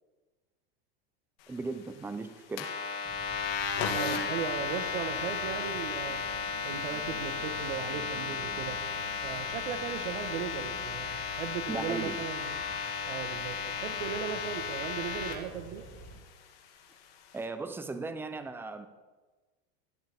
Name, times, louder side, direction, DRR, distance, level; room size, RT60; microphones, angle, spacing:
voice 1, 1.5-2.7 11.7-12.2 17.3-18.9, right 3 dB, 5° right, 9 dB, 0.6 m, -37 dB
sound 1, 2.6-15.3, left 6 dB, 80° left, 2.8 m, -34 dB
Insect / Frog, 3.0-16.2, right 2 dB, 35° right, 2.1 m, -49 dB
voice 2, 3.9-6.2 6.6-8.8 9.2-12.5 13.1-15.8, right 8 dB, 75° right, 8 dB, 1.5 m, -37 dB
16.5 x 9.9 x 3.7 m, 1.3 s
supercardioid pair, 150°, 29 cm